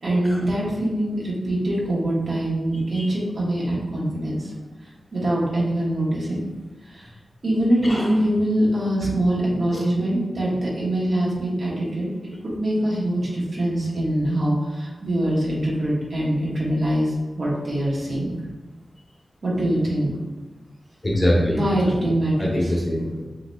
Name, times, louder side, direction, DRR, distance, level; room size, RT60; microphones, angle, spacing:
voice 1, 0.0-4.5 5.1-6.4 6.8-7.1 7.4-12.1 12.4-18.4 19.4-20.2 21.5-22.7, right 1 dB, 60° right, -6 dB, 1.2 m, -23 dB
voice 2, 21.0-21.9 22.4-23.3, equal, 25° left, -4 dB, 0.9 m, -23 dB
6.1 x 2.7 x 2.2 m, 1.2 s
wide cardioid pair, 130°, 0 cm